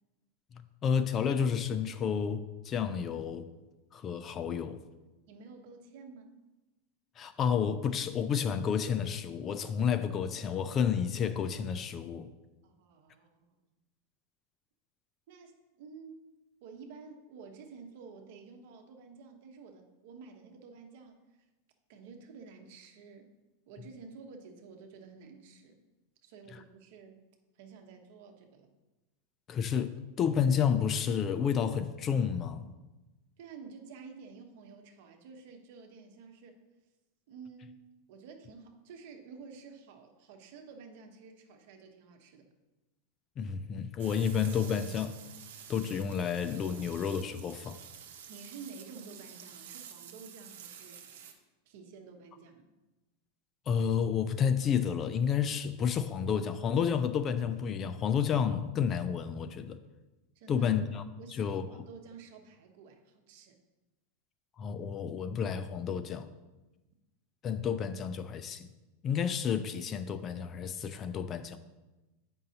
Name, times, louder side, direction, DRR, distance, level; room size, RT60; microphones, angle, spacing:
voice 1, 0.5-3.5 3.9-4.8 7.2-12.3 29.5-32.7 43.4-45.2 45.7-47.8 53.7-59.8 60.5-61.0 61.3-61.6 64.6-66.3 67.4-68.7 69.0-71.6, left 7 dB, 25° left, 11 dB, 0.3 m, -30 dB
voice 2, 5.3-6.4 12.6-13.6 15.3-16.3 16.6-21.2 21.9-23.3 23.7-25.8 26.2-27.1 27.6-28.7 33.4-36.6 37.3-37.8 38.1-42.5 48.3-51.0 51.6-52.7 60.3-60.7 61.2-63.6, right 5 dB, 60° right, 4 dB, 1.0 m, -51 dB
sound 1, 44.0-51.3, right 8 dB, 80° right, 0.9 m, -50 dB
8.8 x 5.4 x 2.8 m, 1.1 s
supercardioid pair, 155°, 0 cm